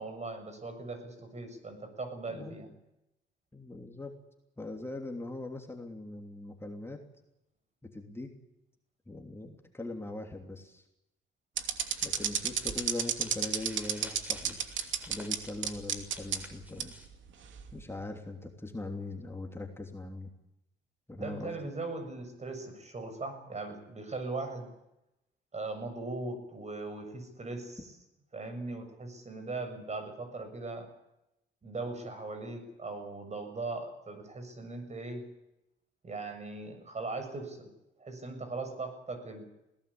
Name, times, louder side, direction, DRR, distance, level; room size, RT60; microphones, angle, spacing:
voice 1, 0.0-2.7 21.2-24.7 25.5-27.8 28.3-30.9 31.6-35.2 36.0-37.7 38.0-39.5, right 3 dB, 35° right, 8 dB, 7.2 m, -39 dB
voice 2, 2.3-2.6 3.5-4.2 4.6-7.0 7.8-8.3 9.1-10.8 12.0-14.6 15.1-16.9 17.7-20.3 21.1-21.7, left 2 dB, 10° left, 2 dB, 3.1 m, -41 dB
sound 1, 11.6-15.4 15.6-16.4 16.8-16.9 17.6-17.8, right 8 dB, 70° right, 2.8 m, -30 dB
sound 2, 11.8-17.1, equal, 10° right, 5.9 m, -52 dB
22.0 x 18.0 x 8.7 m, 0.88 s
cardioid pair, 90°, 20 cm